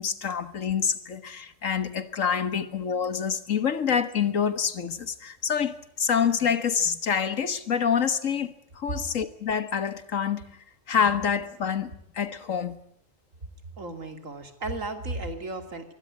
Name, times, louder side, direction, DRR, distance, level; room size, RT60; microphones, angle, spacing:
voice 1, 0.0-12.8, left 7 dB, 80° left, 13 dB, 1.9 m, -27 dB
voice 2, 13.8-15.9, right 2 dB, 80° right, 8 dB, 3.1 m, -34 dB
24.0 x 17.0 x 9.7 m, 0.71 s
omnidirectional pair, 1.3 m